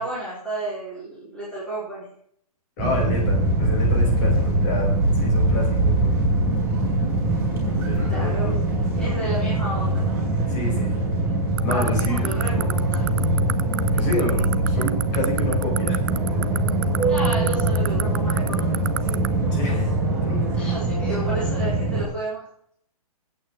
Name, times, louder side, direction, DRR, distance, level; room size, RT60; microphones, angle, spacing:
voice 1, 0.0-2.1 8.1-8.7 9.0-10.1 11.7-13.1 17.0-19.1 20.5-22.4, right 2 dB, 5° left, -8 dB, 4.3 m, -32 dB
voice 2, 2.8-6.2 7.7-8.6 10.5-11.1 11.6-12.3 13.9-16.0 19.5-20.5 21.0-21.1, left 2 dB, 35° left, 0 dB, 5.3 m, -29 dB
sound 1, 2.8-22.0, right 2 dB, 10° right, 5.0 m, -22 dB
sound 2, 11.6-19.3, right 12 dB, 35° right, 0.4 m, -26 dB
8.9 x 7.6 x 8.9 m, 0.65 s
hypercardioid pair, 165°, 19 cm